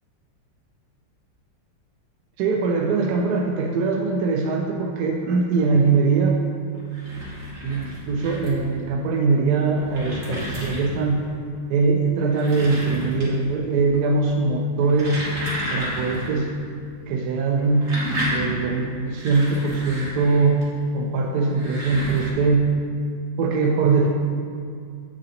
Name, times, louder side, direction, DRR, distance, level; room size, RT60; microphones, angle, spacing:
voice 1, 2.4-6.4 7.6-11.3 11.7-15.3 15.7-16.5 17.1-18.0 18.3-20.7 20.9-22.8 23.4-24.1, right 4 dB, 70° right, 2 dB, 1.0 m, -21 dB
sound 1, 6.7-8.7 9.4-11.1 12.1-13.5 13.8-14.3 14.7-16.4 16.7-16.8 17.5-20.6 21.4-22.3, equal, 45° right, 1.9 m, -32 dB
8.0 x 7.5 x 2.9 m, 2.3 s
omnidirectional pair, 2.0 m